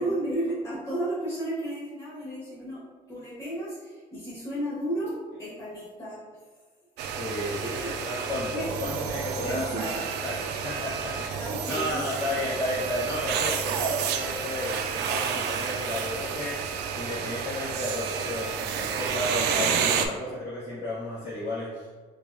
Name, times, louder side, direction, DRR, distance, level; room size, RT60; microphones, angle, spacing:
voice 1, 0.0-2.8 3.1-6.2 7.6-7.9 8.5-8.7 9.4-10.0 11.4-12.0, right 1 dB, 15° left, -11 dB, 1.3 m, -33 dB
sound 1, 7.0-20.1, right 7 dB, 80° right, 0.4 m, -30 dB
voice 2, 7.1-22.0, left 1 dB, 45° left, -11 dB, 1.5 m, -33 dB
4.9 x 2.3 x 2.5 m, 1.4 s
cardioid pair, 110°, 17 cm